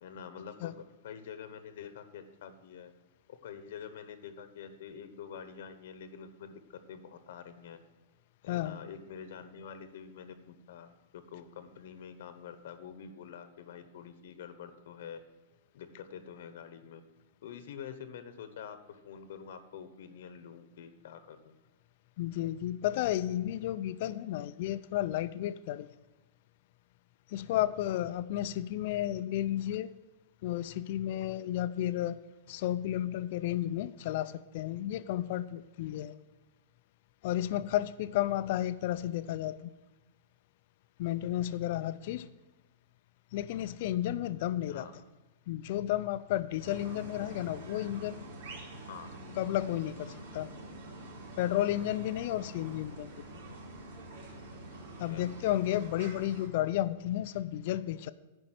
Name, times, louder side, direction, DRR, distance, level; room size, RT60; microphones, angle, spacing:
voice 1, 0.0-0.7 1.0-2.9 3.3-7.8 8.4-15.2 15.7-17.0 17.4-21.6 27.8-28.0 44.7-45.0 48.9-49.2 55.0-55.3, left 7 dB, 60° left, 10 dB, 0.9 m, -47 dB
voice 2, 8.5-8.8 22.2-25.9 27.3-29.9 30.4-32.2 32.5-36.2 37.2-39.7 41.0-42.3 43.3-44.9 45.5-48.2 49.4-50.5 51.4-53.3 55.0-58.1, left 13 dB, 45° left, 14 dB, 0.4 m, -32 dB
sound 1, 46.6-56.5, right 2 dB, 70° right, 4.2 m, -46 dB
9.9 x 5.3 x 7.7 m, 1.1 s
supercardioid pair, 175°, 0 cm